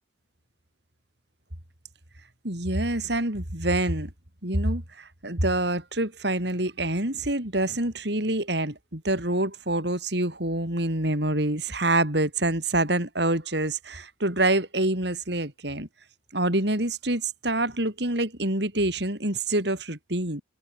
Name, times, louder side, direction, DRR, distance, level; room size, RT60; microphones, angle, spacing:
voice 1, 2.4-4.1 4.4-15.9 16.3-20.4, right 1 dB, 60° right, 4.8 m, -26 dB
head